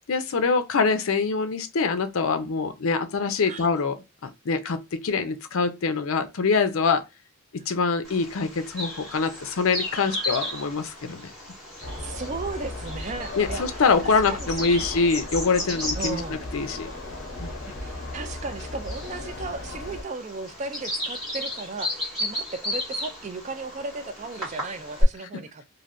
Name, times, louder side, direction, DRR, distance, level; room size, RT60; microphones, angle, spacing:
voice 1, 0.1-4.0 4.2-7.0 7.7-11.2 13.3-16.9 17.4-17.5, left 4 dB, 75° left, 0.5 m, -24 dB
Bird vocalization bird call bird song, 8.0-25.0, left 1 dB, ahead, 2.0 m, -34 dB
sound 1, 11.8-20.0, left 2 dB, 55° left, 1.0 m, -36 dB
voice 2, 12.0-13.7 14.0-15.0 16.0-16.4 17.7-25.7, right 3 dB, 35° right, 0.3 m, -36 dB
3.2 x 2.5 x 2.5 m
head